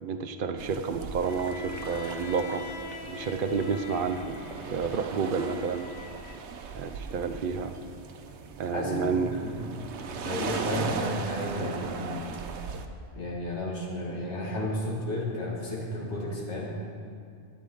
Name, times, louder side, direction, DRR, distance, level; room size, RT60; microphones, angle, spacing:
voice 1, 0.0-2.6 3.1-4.4 4.7-5.9 6.7-7.8 8.6-9.4, right 5 dB, 55° right, 9 dB, 0.7 m, -30 dB
sound 1, 0.6-12.9, right 5 dB, 85° right, 1.0 m, -38 dB
Bowed string instrument, 1.2-6.4, left 3 dB, 40° left, 1.0 m, -42 dB
voice 2, 8.7-9.6 10.2-12.3 13.2-16.7, left 1 dB, 80° left, -3 dB, 2.3 m, -33 dB
12.0 x 11.0 x 3.8 m, 2.4 s
omnidirectional pair, 1.2 m